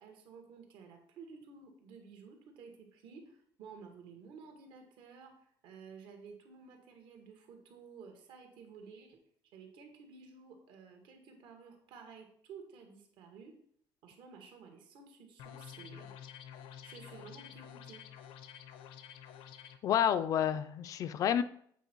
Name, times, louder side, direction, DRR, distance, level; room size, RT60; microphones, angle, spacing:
voice 1, 0.0-9.2 9.5-13.5 14.0-16.1 16.8-18.0, right 5 dB, 70° right, 3 dB, 1.6 m, -53 dB
sound 1, 15.4-19.8, left 9 dB, 85° left, 0.6 m, -50 dB
voice 2, 19.8-21.4, left 9 dB, 45° left, 13 dB, 0.3 m, -29 dB
8.1 x 4.4 x 4.5 m, 0.64 s
cardioid pair, 170°, 8 cm